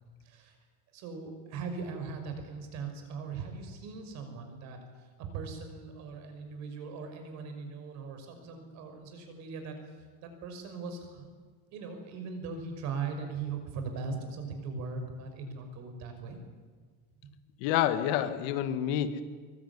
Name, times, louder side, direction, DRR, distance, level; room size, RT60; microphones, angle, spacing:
voice 1, 0.2-0.6 0.9-9.9 10.2-11.3 11.7-16.4, right 4 dB, 45° right, 6 dB, 5.8 m, -39 dB
voice 2, 17.6-19.2, left 10 dB, 60° left, 10 dB, 2.0 m, -28 dB
23.5 x 22.0 x 9.8 m, 1.5 s
cardioid pair, 180°, 38 cm